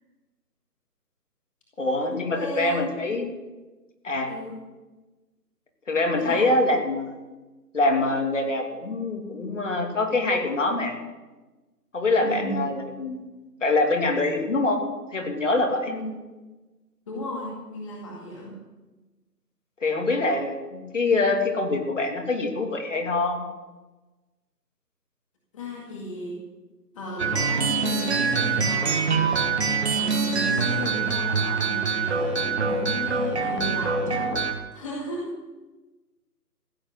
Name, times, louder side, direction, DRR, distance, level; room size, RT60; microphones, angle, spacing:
voice 1, 1.8-3.3 4.0-4.3 5.9-7.1 7.7-10.9 11.9-13.2 13.6-14.8 15.1-15.9 19.8-23.4, left 2 dB, 50° left, 2 dB, 3.0 m, -24 dB
voice 2, 2.3-2.8 4.3-4.6 6.1-6.5 12.2-12.7 15.9-16.1 17.1-18.6 25.5-26.4 26.9-34.3 34.7-35.3, left 1 dB, 20° left, -3 dB, 2.1 m, -35 dB
sound 1, 27.2-34.5, right 4 dB, 40° right, 1.7 m, -24 dB
15.5 x 8.4 x 8.2 m, 1.2 s
figure-of-eight pair, 155°, 49 cm